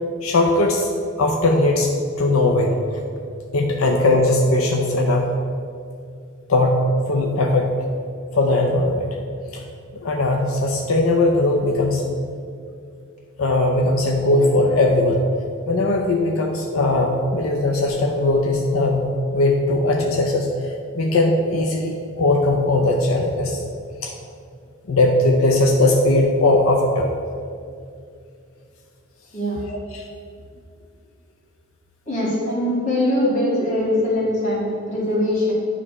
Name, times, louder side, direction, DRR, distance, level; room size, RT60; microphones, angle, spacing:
voice 1, 0.2-0.9 1.2-1.9 2.2-3.0 3.5-5.3 6.5-7.7 8.3-9.1 9.5-9.6 10.0-12.0 13.4-15.2 15.7-20.5 20.9-23.6 24.0-24.1 24.9-27.1 29.7-30.0 32.4-32.5 33.2-33.4, left 2 dB, 85° left, 2 dB, 0.6 m, -19 dB
voice 2, 32.1-35.5, left 1 dB, 35° left, -5 dB, 1.7 m, -22 dB
9.8 x 3.3 x 5.4 m, 2.4 s
head